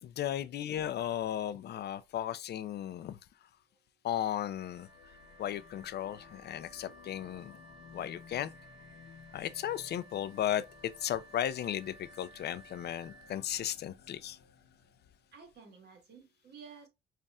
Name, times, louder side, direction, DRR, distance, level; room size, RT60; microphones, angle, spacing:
voice 1, 0.0-3.2 4.0-4.9 5.4-7.6 7.9-8.5 9.3-14.4, left 11 dB, 55° left, 0.4 m, -35 dB
Wind instrument woodwind instrument, 4.5-14.0, right 1 dB, ahead, 0.9 m, -57 dB
sound 1, 4.7-15.3, left 7 dB, 80° left, 0.9 m, -58 dB
voice 2, 15.3-16.9, right 5 dB, 60° right, 1.4 m, -52 dB
5.4 x 2.5 x 2.2 m
cardioid pair, 90°, 20 cm